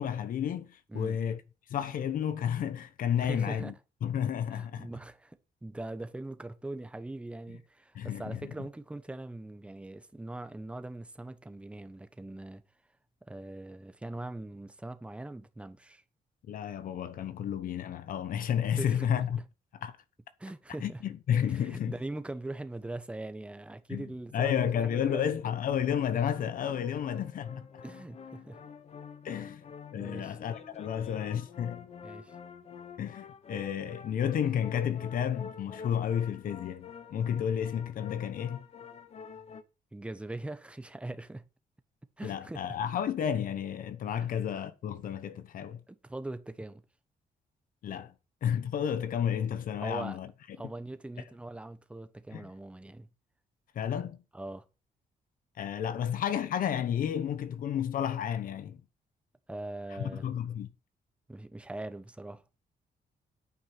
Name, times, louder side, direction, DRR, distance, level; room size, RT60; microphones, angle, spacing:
voice 1, 0.0-1.4 1.7-3.7 4.0-4.9 7.9-8.5 16.5-19.4 19.8-20.0 20.8-21.9 23.9-27.6 29.2-29.7 29.9-31.9 33.0-38.6 42.2-45.8 47.8-48.1 48.4-50.3 52.3-52.5 53.7-54.2 55.6-58.8 60.2-60.7, left 9 dB, 65° left, 1.0 m, -31 dB
voice 2, 3.2-3.7 4.5-12.6 13.2-16.0 18.8-19.4 20.4-21.0 21.5-25.2 27.8-28.6 29.9-30.4 32.0-32.4 39.9-41.5 42.2-42.8 44.2-44.3 45.9-46.8 49.8-50.2 50.6-53.1 54.3-54.6 59.5-60.3 61.3-62.4, right 2 dB, 5° right, 1.0 m, -41 dB
sound 1, 21.5-22.7 25.3-39.6, left 6 dB, 40° left, 1.2 m, -48 dB
9.7 x 8.7 x 5.9 m
wide cardioid pair, 180°, 16 cm